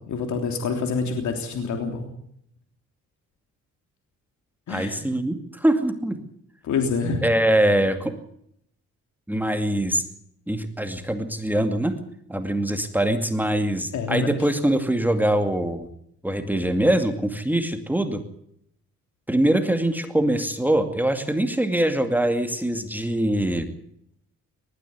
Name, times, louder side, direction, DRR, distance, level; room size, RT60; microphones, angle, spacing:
voice 1, 0.0-2.1 4.7-5.0 6.6-7.2 13.9-14.3, left 4 dB, 70° left, 4 dB, 3.4 m, -26 dB
voice 2, 4.7-6.2 7.2-8.1 9.3-10.0 10.5-12.0 12.3-15.9 16.2-18.2 19.3-23.7, right 1 dB, 5° right, 6 dB, 2.3 m, -23 dB
20.0 x 14.0 x 9.6 m, 0.72 s
cardioid pair, 90°, 30 cm